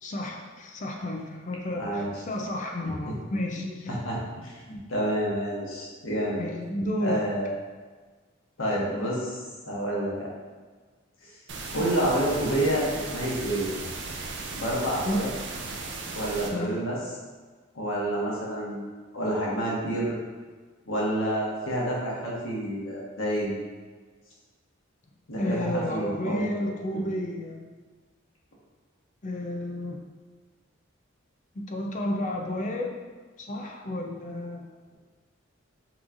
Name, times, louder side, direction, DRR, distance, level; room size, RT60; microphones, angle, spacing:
voice 1, 0.0-3.9 6.4-7.2 15.0-15.2 16.5-16.8 25.4-27.6 29.2-30.0 31.7-32.9 33.4-34.7, left 1 dB, 40° left, 1 dB, 0.5 m, -31 dB
voice 2, 1.8-2.1 3.0-3.1 3.6-6.4 7.0-7.5 8.6-9.4 9.7-10.3 11.7-13.7 14.5-15.3 16.1-17.0 17.7-20.2 20.9-23.6 25.3-26.5 26.9-27.0, right 1 dB, 85° left, -4 dB, 1.3 m, -29 dB
sound 1, 11.5-16.5, right 3 dB, 60° right, 0.6 m, -36 dB
6.0 x 3.1 x 2.5 m, 1.4 s
head